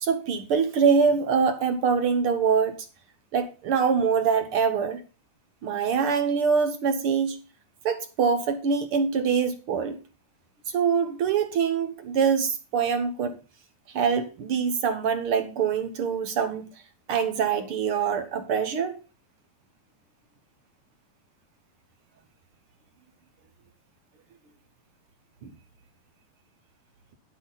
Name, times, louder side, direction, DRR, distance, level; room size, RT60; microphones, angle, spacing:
voice 1, 0.0-2.9 3.3-5.0 5.6-7.4 7.8-10.0 10.7-13.4 13.9-16.7 17.1-19.0 25.4-25.5, right 6 dB, 60° right, 1.6 m, -24 dB
10.5 x 8.1 x 4.0 m
omnidirectional pair, 3.5 m